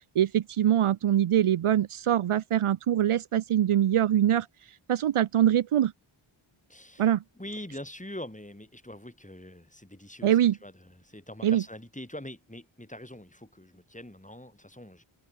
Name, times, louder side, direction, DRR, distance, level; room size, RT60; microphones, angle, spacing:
voice 1, 0.2-4.5 4.9-5.9 7.0-7.2 10.2-10.6 11.4-11.6, right 11 dB, 80° right, 0.6 m, -23 dB
voice 2, 6.7-15.0, left 1 dB, 15° left, 4.8 m, -44 dB
wide cardioid pair, 55°, 50 cm